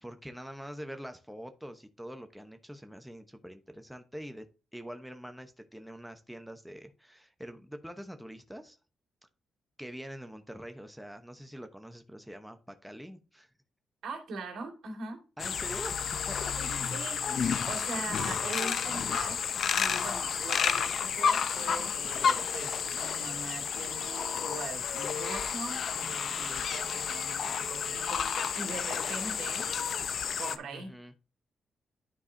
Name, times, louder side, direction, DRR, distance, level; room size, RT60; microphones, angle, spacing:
voice 1, 0.0-4.4 4.7-8.8 9.8-13.5 15.4-16.5 17.9-18.1 30.7-31.1, equal, ahead, 1.0 m, -44 dB
voice 2, 14.0-15.2 16.6-17.2 17.7-19.4 19.8-29.7 30.4-30.9, right 4 dB, 80° right, 2.6 m, -41 dB
sound 1, 15.4-30.6, left 7 dB, 65° left, 0.7 m, -31 dB
11.5 x 4.7 x 2.7 m
cardioid pair, 80°, 0 cm